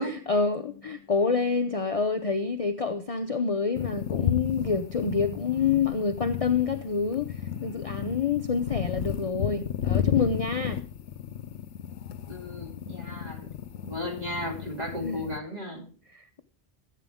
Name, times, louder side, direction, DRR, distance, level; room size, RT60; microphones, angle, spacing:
voice 1, 0.0-10.8 15.0-15.3 16.1-16.4, left 5 dB, 35° left, 0.7 m, -27 dB
sound 1, 3.7-15.4, left 9 dB, 75° left, 0.9 m, -33 dB
voice 2, 12.3-13.5 13.8-15.9, left 1 dB, 35° right, 2.7 m, -35 dB
14.5 x 8.3 x 3.5 m
omnidirectional pair, 1.2 m